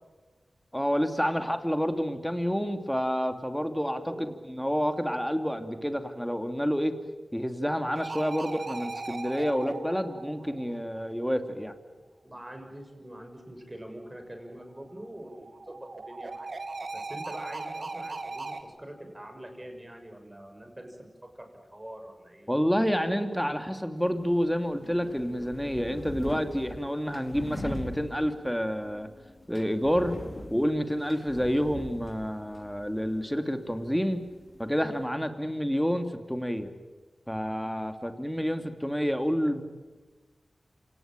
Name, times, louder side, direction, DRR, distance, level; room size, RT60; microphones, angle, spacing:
voice 1, 0.7-6.9 7.3-11.7 22.5-29.1 29.5-30.1 30.5-34.2 34.6-36.7 37.3-39.6, equal, 5° left, 7 dB, 2.8 m, -29 dB
sound 1, 7.9-11.2 14.8-18.6, right 3 dB, 60° right, 2.6 m, -38 dB
voice 2, 12.2-16.5 16.9-22.6, right 1 dB, 20° right, 4 dB, 6.7 m, -44 dB
sound 2, 24.0-35.0, left 1 dB, 45° left, 4.9 m, -43 dB
27.5 x 18.5 x 9.1 m, 1.3 s
cardioid pair, 50°, 0 cm